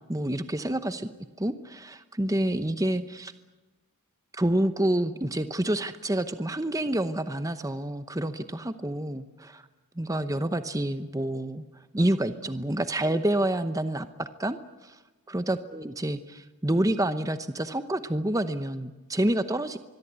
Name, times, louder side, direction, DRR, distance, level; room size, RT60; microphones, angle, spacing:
voice 1, 0.1-1.1 1.4-3.3 4.3-9.6 10.0-11.6 11.9-15.0 15.3-19.8, right 1 dB, 15° right, 10 dB, 0.8 m, -28 dB
25.0 x 22.5 x 8.2 m, 1.2 s
head